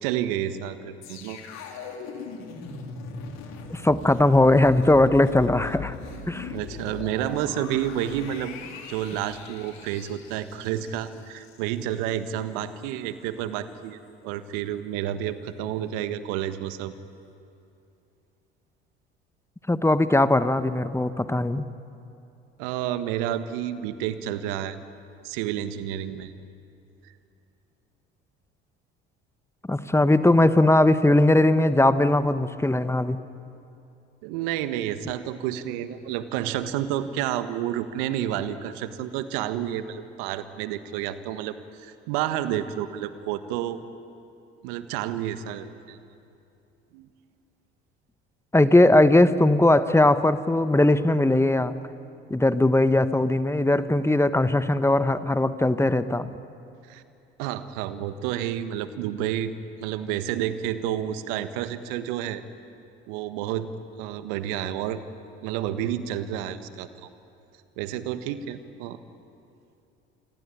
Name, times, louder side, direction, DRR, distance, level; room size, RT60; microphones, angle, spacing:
voice 1, 0.0-1.4 6.5-8.5 8.9-16.9 22.6-24.8 25.2-26.3 34.2-43.8 44.6-46.0 46.9-47.1 56.9-57.0 57.4-62.4 63.1-63.7 64.0-65.0 65.4-67.1 67.8-69.0, right 11 dB, 70° right, 11 dB, 1.6 m, -30 dB
sound 1, 1.0-12.2 12.5-12.7, left 5 dB, 60° left, 3.6 m, -40 dB
voice 2, 3.7-5.9 6.3-6.5 19.7-21.6 29.7-33.2 48.5-51.7 52.3-56.3, left 1 dB, 10° left, 12 dB, 1.3 m, -19 dB
28.5 x 21.0 x 10.0 m, 2.7 s
hypercardioid pair, 60°, 31 cm